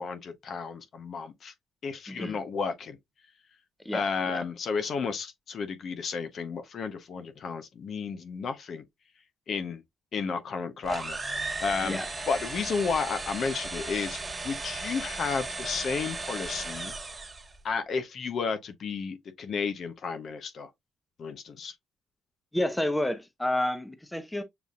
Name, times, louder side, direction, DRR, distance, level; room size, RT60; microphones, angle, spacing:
voice 1, 0.0-1.5 1.8-3.0 3.9-8.8 9.5-9.8 10.1-12.0 12.3-14.2 14.4-16.9 17.6-20.7 21.2-21.7, left 5 dB, 55° left, 0.8 m, -32 dB
voice 2, 2.1-2.4 3.8-4.4 11.8-12.1 22.5-24.4, left 1 dB, 10° left, 0.8 m, -30 dB
sound 1, 10.8-17.5, right 3 dB, 25° right, 1.8 m, -36 dB
6.9 x 2.6 x 2.4 m
cardioid pair, 90°, 0 cm